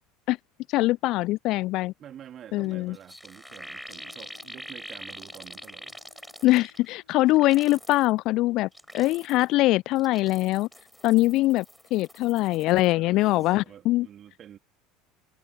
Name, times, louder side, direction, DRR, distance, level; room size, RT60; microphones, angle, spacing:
voice 1, 0.7-1.9 2.5-3.0 6.4-8.7 8.9-10.7 11.0-11.6 11.9-14.1, left 18 dB, 50° left, 0.3 m, -22 dB
voice 2, 2.0-6.3 12.9-14.6, right 10 dB, 40° right, 2.9 m, -48 dB
sound 1, 2.6-2.7 2.9-6.9 7.3-8.1 8.6-9.5 9.9-12.9 13.2-13.5, equal, ahead, 6.3 m, -45 dB
sound 2, 3.5-8.8, left 7 dB, 80° left, 5.5 m, -61 dB
figure-of-eight pair, 70°, 0 cm